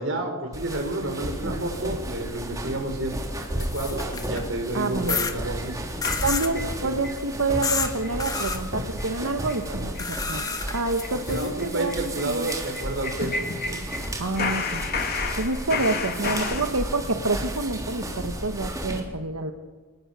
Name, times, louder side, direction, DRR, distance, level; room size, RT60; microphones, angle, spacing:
voice 1, 0.0-3.1 3.5-5.8 6.2-7.0 9.7-9.8 11.1-13.8, right 1 dB, 60° right, 4 dB, 5.0 m, -31 dB
sound 1, 0.5-19.0, right 1 dB, 15° right, 3.5 m, -33 dB
voice 2, 1.4-1.9 4.7-5.2 6.2-10.4 10.7-12.5 14.2-14.9 15.3-19.5, right 2 dB, 85° right, 5 dB, 1.4 m, -28 dB
sound 2, 3.4-4.5 5.1-5.3 6.0-6.5 7.6-7.9 8.2-8.6 10.0-11.5, left 5 dB, 15° left, 1.5 m, -29 dB
sound 3, 6.0-7.2 7.6-7.7 8.0-8.2 8.5-8.6 9.0-9.2 9.5-9.7 9.9-10.1 10.4-14.1 14.4-16.7, left 4 dB, 45° left, 2.6 m, -32 dB
29.5 x 20.0 x 6.9 m, 1.4 s
head